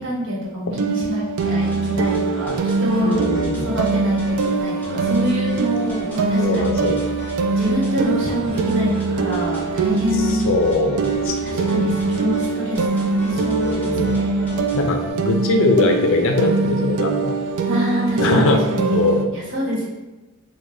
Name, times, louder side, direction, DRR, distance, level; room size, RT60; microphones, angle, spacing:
voice 1, 0.0-3.2 3.6-7.0 7.6-10.5 11.4-14.6 17.7-18.9 19.3-19.9, left 1 dB, 60° right, -5 dB, 1.1 m, -26 dB
sound 1, 0.7-19.2, right 4 dB, 80° right, 0.3 m, -23 dB
sound 2, 1.4-15.1, equal, 10° left, 1.0 m, -34 dB
voice 2, 3.0-3.7 6.4-7.0 10.2-11.9 13.6-14.1 14.7-17.4 18.2-18.6 18.9-19.3, left 3 dB, 60° left, 4 dB, 0.4 m, -21 dB
3.2 x 2.2 x 3.7 m, 1.1 s
head